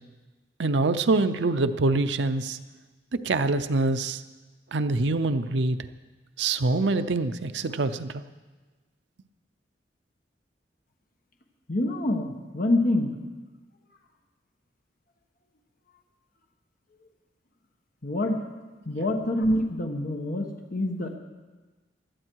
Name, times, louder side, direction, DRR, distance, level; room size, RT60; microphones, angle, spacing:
voice 1, 0.6-2.6 3.2-4.2 4.7-5.8 6.4-8.2, right 3 dB, 80° right, 9 dB, 0.6 m, -25 dB
voice 2, 11.7-13.2 18.0-18.4 18.8-21.2, left 1 dB, 50° left, 3 dB, 1.2 m, -26 dB
16.5 x 12.0 x 4.7 m, 1.3 s
head